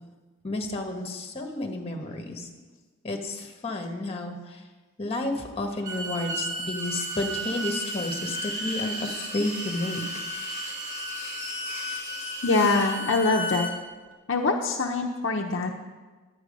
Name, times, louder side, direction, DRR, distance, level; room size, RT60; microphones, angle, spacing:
voice 1, 0.4-2.5 3.0-4.6 5.0-10.0, left 2 dB, 30° left, 3 dB, 1.4 m, -31 dB
Bowed string instrument, 5.7-13.7, equal, 40° right, 1.5 m, -35 dB
sound 1, 6.8-12.9, equal, 20° right, 3.0 m, -38 dB
voice 2, 12.4-13.7 14.3-15.7, left 3 dB, 65° left, 2 dB, 0.7 m, -24 dB
10.5 x 9.1 x 5.3 m, 1.3 s
head